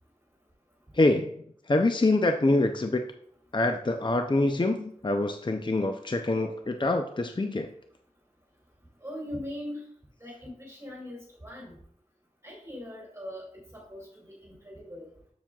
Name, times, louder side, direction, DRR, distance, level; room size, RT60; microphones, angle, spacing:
voice 1, 0.9-1.3 1.7-3.0 3.5-7.7, left 2 dB, 35° left, 6 dB, 0.5 m, -25 dB
voice 2, 9.0-9.8 10.2-11.8 12.4-15.1, left 1 dB, 20° right, -4 dB, 2.6 m, -41 dB
7.3 x 7.2 x 2.3 m, 0.65 s
wide cardioid pair, 50°, 14 cm